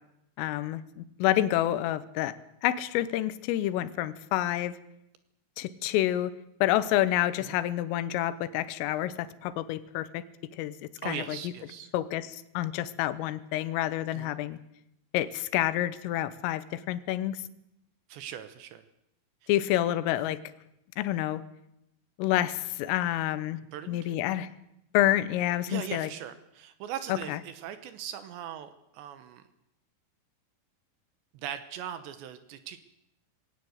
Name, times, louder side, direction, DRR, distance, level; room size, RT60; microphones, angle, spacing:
voice 1, 0.4-2.4 2.6-4.8 5.6-6.3 6.6-10.2 10.5-10.8 11.1-11.5 11.9-14.6 15.1-17.5 19.5-20.4 21.0-21.4 22.2-23.6 23.9-24.5 24.9-26.1 27.1-27.4, left 13 dB, 85° left, 14 dB, 3.6 m, -28 dB
voice 2, 11.0-11.9 14.1-14.4 18.1-18.8 23.7-24.1 25.7-29.4 31.3-32.8, right 10 dB, 75° right, 11 dB, 2.9 m, -40 dB
20.0 x 17.5 x 8.0 m, 0.84 s
omnidirectional pair, 5.8 m